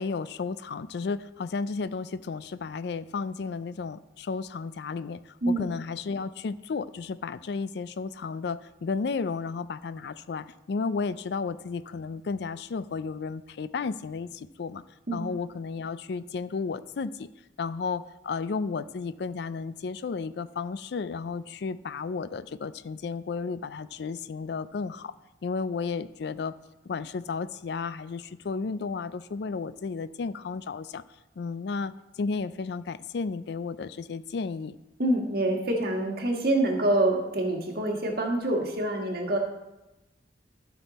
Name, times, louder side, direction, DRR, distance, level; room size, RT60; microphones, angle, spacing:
voice 1, 0.0-14.8 15.1-17.3 17.6-25.1 25.4-26.5 26.8-31.0 31.4-34.8, left 4 dB, 70° left, 15 dB, 0.4 m, -33 dB
voice 2, 35.0-39.4, right 1 dB, 60° right, 1 dB, 1.7 m, -26 dB
12.5 x 6.1 x 4.2 m, 1.0 s
head